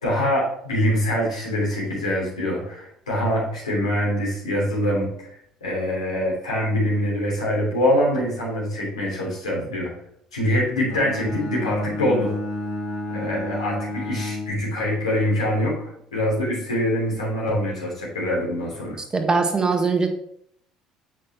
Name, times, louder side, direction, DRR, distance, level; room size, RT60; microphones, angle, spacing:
voice 1, 0.0-5.3 5.6-10.0 10.3-12.3 13.1-19.0, equal, 85° left, -4 dB, 3.1 m, -24 dB
Bowed string instrument, 10.9-15.1, left 2 dB, 65° left, 1.4 m, -31 dB
voice 2, 19.1-20.1, right 4 dB, 25° right, 5 dB, 1.4 m, -21 dB
8.3 x 5.9 x 3.3 m, 0.68 s
figure-of-eight pair, 55°, 3 cm